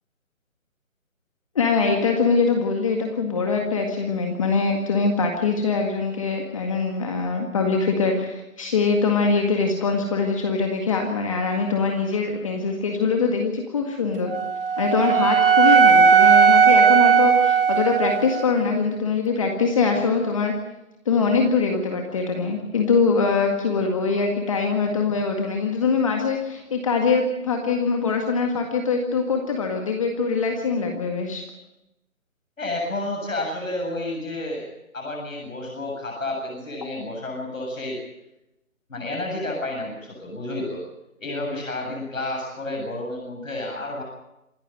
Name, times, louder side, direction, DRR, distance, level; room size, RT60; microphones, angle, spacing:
voice 1, 1.6-14.3 14.8-20.5 21.1-31.4, left 4 dB, 25° left, 2 dB, 1.9 m, -23 dB
Wind instrument woodwind instrument, 14.3-18.5, right 6 dB, 40° right, 1.1 m, -16 dB
voice 2, 32.6-34.7 34.9-38.0 38.9-40.8 41.2-44.0, left 2 dB, 70° left, 0 dB, 7.8 m, -30 dB
27.0 x 12.0 x 9.3 m, 0.91 s
figure-of-eight pair, 165°, 41 cm